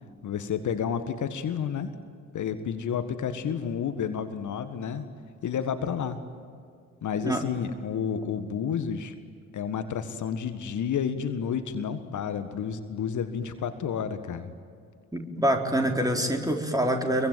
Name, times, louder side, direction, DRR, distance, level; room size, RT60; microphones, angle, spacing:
voice 1, 0.2-1.9 2.3-5.1 5.4-6.2 7.0-9.1 9.5-14.5, left 7 dB, 45° left, 10 dB, 1.7 m, -30 dB
voice 2, 15.1-17.3, right 1 dB, 10° right, 2 dB, 4.1 m, -25 dB
26.5 x 23.0 x 9.2 m, 2.3 s
figure-of-eight pair, 45°, 41 cm